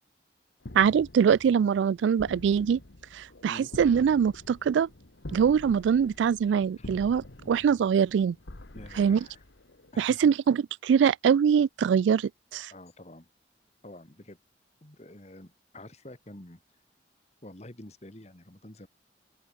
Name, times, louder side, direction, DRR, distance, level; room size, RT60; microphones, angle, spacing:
sound 1, 0.6-10.1, left 1 dB, 85° left, 1.7 m, -46 dB
voice 1, 0.7-2.8 3.1-4.9 5.3-8.4 9.0-9.2 10.0-12.7, right 7 dB, 90° right, 0.3 m, -23 dB
voice 2, 8.7-9.4 9.9-10.3 12.7-13.3 13.8-14.4 14.8-16.6 17.4-18.9, left 1 dB, 35° left, 2.0 m, -47 dB
open air
head